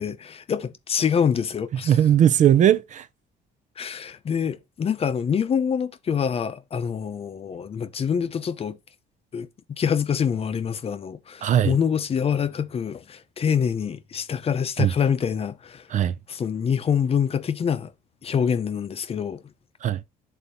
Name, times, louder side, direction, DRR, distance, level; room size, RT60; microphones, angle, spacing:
voice 1, 0.0-2.0 3.8-8.8 9.3-15.9 16.3-17.9 18.2-19.4, left 7 dB, 35° left, 0.7 m, -25 dB
voice 2, 1.9-3.1 11.4-11.8 14.8-14.9 15.9-16.1 19.8-20.0, right 10 dB, 45° right, 0.5 m, -18 dB
11.0 x 4.0 x 2.7 m
cardioid pair, 110°, 17 cm